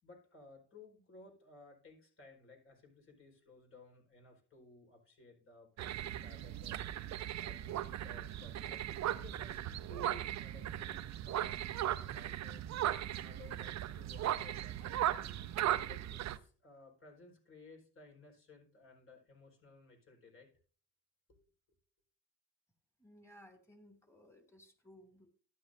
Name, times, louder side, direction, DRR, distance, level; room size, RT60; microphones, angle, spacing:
voice 1, 0.0-9.6 9.9-20.5 21.3-21.4, left 2 dB, 45° left, 1 dB, 4.5 m, -58 dB
sound 1, 5.8-16.4, right 12 dB, 65° right, 0.7 m, -38 dB
voice 2, 23.0-25.3, equal, 10° left, 5 dB, 2.5 m, -60 dB
12.0 x 10.0 x 2.6 m, 0.41 s
cardioid pair, 90°, 30 cm